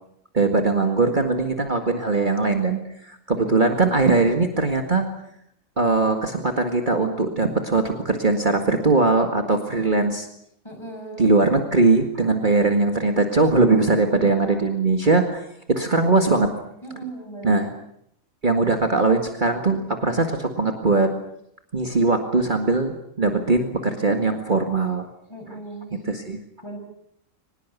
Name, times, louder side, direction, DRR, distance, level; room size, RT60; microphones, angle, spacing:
voice 1, 0.3-5.1 5.8-10.3 11.2-15.4 15.7-16.5 17.4-17.7 18.4-21.1 21.7-25.1 26.0-26.4, right 3 dB, 35° right, 5 dB, 2.1 m, -20 dB
voice 2, 10.6-11.3 14.2-14.7 16.8-17.7 25.3-25.9 26.6-26.8, right 2 dB, 20° left, 3 dB, 6.9 m, -38 dB
24.0 x 20.5 x 8.4 m, 0.73 s
omnidirectional pair, 1.4 m